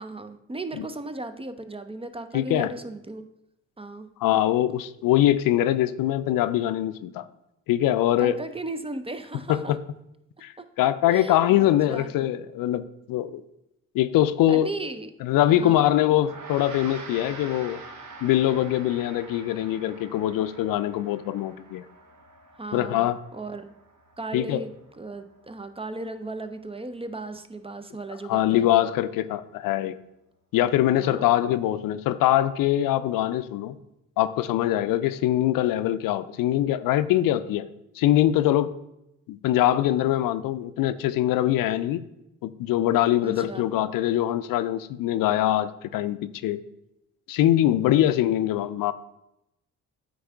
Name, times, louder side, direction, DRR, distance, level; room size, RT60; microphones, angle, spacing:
voice 1, 0.0-3.2 3.8-4.1 8.2-9.8 11.1-12.1 14.5-15.1 15.5-15.9 22.5-23.7 24.2-28.7 30.9-31.3 43.2-43.7 47.9-48.0, right 2 dB, 15° right, 9 dB, 0.5 m, -36 dB
voice 2, 2.3-2.7 4.2-7.3 7.7-8.4 9.5-9.8 10.4-13.4 13.9-14.7 15.2-17.8 18.2-21.8 22.7-23.2 24.3-24.6 28.3-30.0 30.5-33.8 34.2-37.7 38.0-38.7 39.3-42.0 42.4-46.6 47.3-48.9, left 13 dB, 70° left, 14 dB, 0.5 m, -23 dB
Gong, 16.1-25.8, right 3 dB, 55° right, 1.0 m, -45 dB
8.8 x 3.5 x 3.4 m, 0.85 s
supercardioid pair, 55°, 36 cm